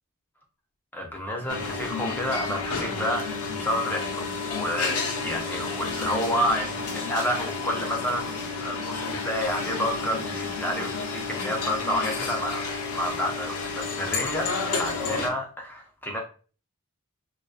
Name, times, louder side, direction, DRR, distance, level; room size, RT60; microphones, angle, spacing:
voice 1, 0.9-14.5 14.8-16.2, equal, 10° left, 1 dB, 0.4 m, -30 dB
sound 1, 1.5-15.3, left 4 dB, 75° left, 0.5 m, -31 dB
2.5 x 2.2 x 2.3 m, 0.37 s
head